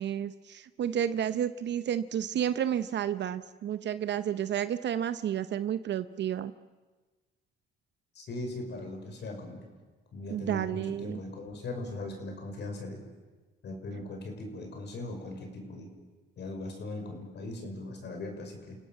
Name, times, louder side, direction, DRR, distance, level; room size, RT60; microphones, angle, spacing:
voice 1, 0.0-6.5 10.3-11.2, right 9 dB, 65° right, 13 dB, 0.7 m, -31 dB
voice 2, 8.1-9.6 10.1-13.0 13.6-15.9 16.4-18.8, left 2 dB, 60° left, 3 dB, 5.7 m, -39 dB
29.5 x 17.0 x 7.5 m, 1.3 s
cardioid pair, 90°, 20 cm